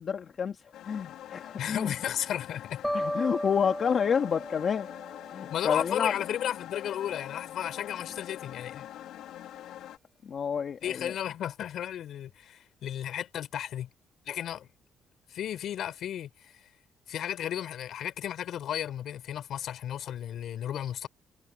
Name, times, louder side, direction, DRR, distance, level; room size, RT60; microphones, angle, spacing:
voice 1, 0.0-1.9 2.9-4.9 5.3-6.1 10.2-11.1, left 7 dB, 45° left, 1.8 m, -29 dB
sound 1, 0.7-10.0, left 12 dB, 85° left, 2.6 m, -44 dB
voice 2, 1.6-2.9 5.5-8.9 10.8-13.9 14.3-14.7 15.3-16.5 17.1-21.1, left 10 dB, 70° left, 4.0 m, -34 dB
sound 2, 2.8-5.9, equal, ahead, 2.4 m, -35 dB
cardioid pair, 115°, 0 cm